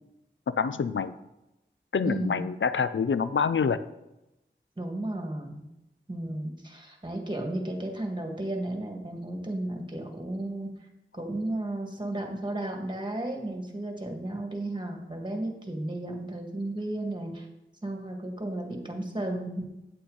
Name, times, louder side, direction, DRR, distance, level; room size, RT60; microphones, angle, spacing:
voice 1, 0.5-1.1 1.9-3.8, left 6 dB, 80° left, 13 dB, 0.5 m, -26 dB
voice 2, 2.0-2.4 4.8-5.6 6.1-10.7 11.1-17.5 17.8-19.6, right 1 dB, 25° right, 2 dB, 1.9 m, -33 dB
8.6 x 8.3 x 4.0 m, 0.94 s
wide cardioid pair, 45°, 20 cm